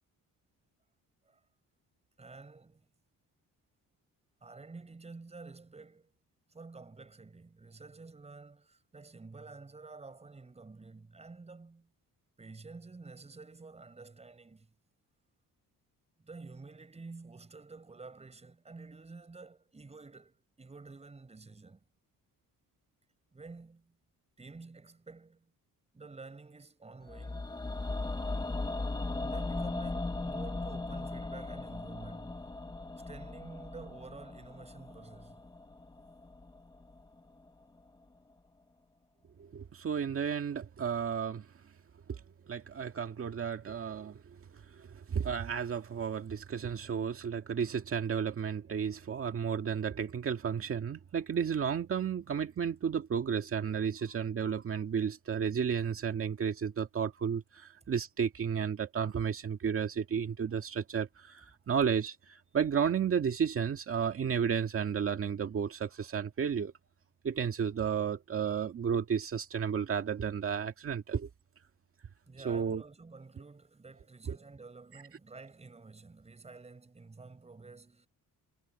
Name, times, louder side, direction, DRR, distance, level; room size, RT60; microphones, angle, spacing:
voice 1, 2.2-2.9 4.4-6.1 6.5-11.9 12.4-14.7 16.2-21.8 23.3-23.9 24.4-25.5 25.9-27.7 29.2-32.5 33.0-35.4 72.3-78.1, right 3 dB, 20° right, 5.7 m, -50 dB
sound 1, 27.1-37.2 37.5-37.6, left 2 dB, 10° left, 1.1 m, -38 dB
voice 2, 39.4-41.5 42.1-42.2 42.5-44.2 44.5-66.7 67.2-71.3 72.4-72.8 74.3-74.4, right 7 dB, 40° right, 2.0 m, -32 dB
cardioid pair, 165°, 35 cm